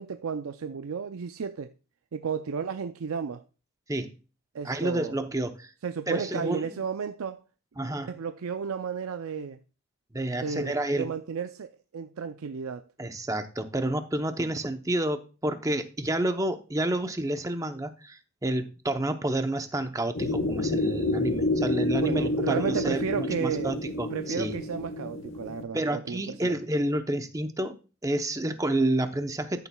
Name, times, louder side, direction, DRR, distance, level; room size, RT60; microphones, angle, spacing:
voice 1, 0.0-1.7 2.1-3.4 4.5-5.2 5.8-7.4 8.0-9.6 10.4-12.8 22.0-23.7 24.1-26.6, right 6 dB, 80° right, 0.5 m, -33 dB
voice 2, 4.6-5.7 6.1-6.8 7.8-8.1 10.1-11.1 13.0-24.5 25.7-27.8 28.0-29.7, right 1 dB, 15° right, 0.7 m, -29 dB
sound 1, 20.2-25.6, left 1 dB, 60° left, 1.2 m, -29 dB
13.0 x 7.0 x 2.3 m
head